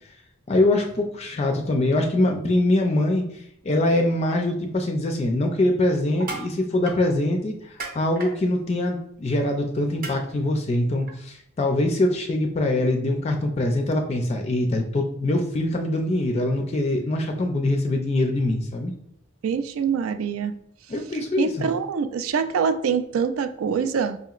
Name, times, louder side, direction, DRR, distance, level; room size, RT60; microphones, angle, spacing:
voice 1, 0.5-18.9 20.9-21.6, left 1 dB, 30° left, 3 dB, 0.3 m, -23 dB
sound 1, 6.1-6.5 6.9-7.0 7.8-8.3 10.0-10.1 11.1-11.2, right 3 dB, 40° right, 0.7 m, -34 dB
voice 2, 19.4-20.5 21.4-24.2, right 6 dB, 75° right, 10 dB, 0.3 m, -24 dB
5.1 x 2.8 x 2.4 m, 0.69 s
head